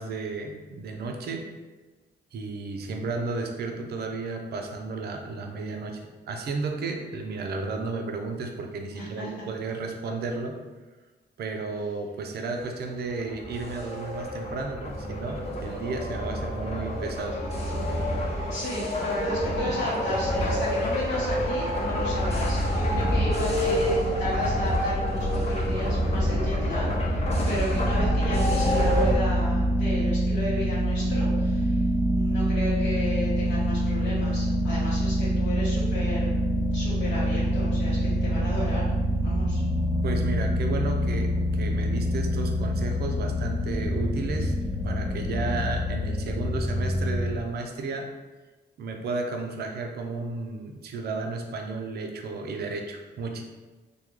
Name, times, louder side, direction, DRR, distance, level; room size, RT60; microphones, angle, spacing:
voice 1, 0.0-1.5 2.3-10.6 11.4-17.4 40.0-44.5 44.8-48.1 48.8-53.4, right 3 dB, 60° right, 4 dB, 0.5 m, -33 dB
voice 2, 8.9-9.3 18.5-31.8 32.1-36.3 36.7-38.9 39.2-39.6, left 1 dB, 75° left, -8 dB, 0.9 m, -34 dB
sound 1, 13.1-29.2, equal, 35° left, 0.8 m, -27 dB
sound 2, 27.7-47.3, equal, ahead, 0.3 m, -25 dB
3.5 x 2.2 x 3.0 m, 1.2 s
cardioid pair, 125°, 19 cm